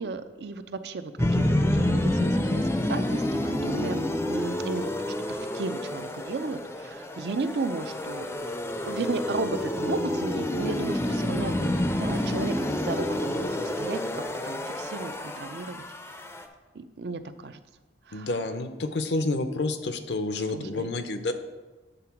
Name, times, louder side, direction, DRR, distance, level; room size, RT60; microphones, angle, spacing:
voice 1, 0.0-1.4 1.7-4.9 5.3-8.3 8.9-16.2 16.7-17.6 18.1-18.3 20.5-20.9, right 3 dB, 65° right, 10 dB, 0.5 m, -34 dB
sound 1, 1.2-16.4, left 1 dB, 15° left, 0.4 m, -28 dB
voice 2, 3.6-3.9 11.3-11.9 18.1-21.3, left 2 dB, 70° left, 8 dB, 0.6 m, -30 dB
9.2 x 3.8 x 5.8 m, 1.2 s
head